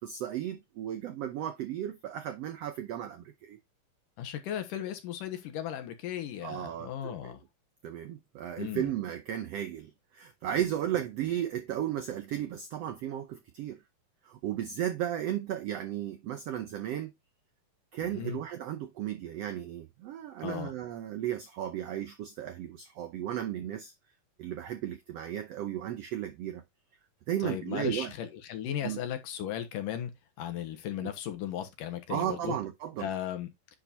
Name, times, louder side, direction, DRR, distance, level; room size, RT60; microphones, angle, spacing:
voice 1, 0.0-3.6 6.4-7.4 7.8-13.8 14.2-17.1 17.9-23.9 24.4-26.6 27.3-28.1 28.8-29.0 31.0-31.1 32.1-33.1, right 11 dB, 85° right, 1.4 m, -35 dB
voice 2, 4.2-7.4 8.6-8.9 18.0-18.4 20.4-20.7 27.4-30.1 30.4-32.6 33.0-33.5, left 10 dB, 75° left, 2.8 m, -36 dB
10.0 x 5.0 x 2.7 m
omnidirectional pair, 3.9 m